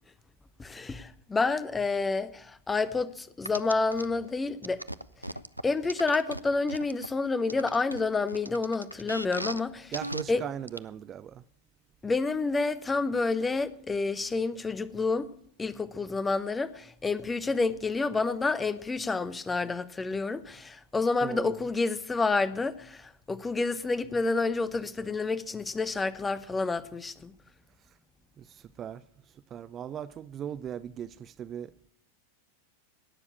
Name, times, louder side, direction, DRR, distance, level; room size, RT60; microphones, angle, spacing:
voice 1, 0.6-4.8 5.6-9.9 10.3-10.4 12.0-15.3 15.6-27.3, left 3 dB, 15° left, 0.8 m, -29 dB
sound 1, 3.5-4.0 4.6-7.1 7.5-9.6 9.9-10.2 10.7-10.8, right 1 dB, 90° right, 0.5 m, -37 dB
voice 2, 9.9-11.4 21.2-21.5 28.4-29.0 29.5-31.9, right 9 dB, 25° right, 0.5 m, -38 dB
17.5 x 6.9 x 8.4 m
figure-of-eight pair, 90°, 0 cm